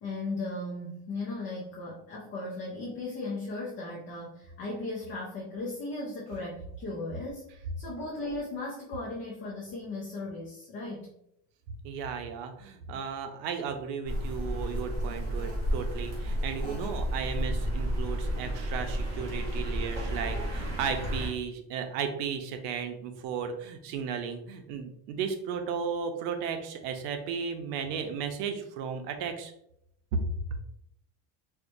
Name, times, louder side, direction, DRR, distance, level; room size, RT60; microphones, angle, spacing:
voice 1, 0.0-11.1, left 2 dB, 30° left, -4 dB, 0.4 m, -37 dB
voice 2, 11.8-29.5 30.1-30.2 30.5-30.6, right 6 dB, 90° right, 6 dB, 0.7 m, -34 dB
sound 1, 14.0-21.3, equal, 35° right, 1.1 m, -32 dB
4.4 x 2.2 x 2.6 m, 0.75 s
cardioid pair, 175°, 47 cm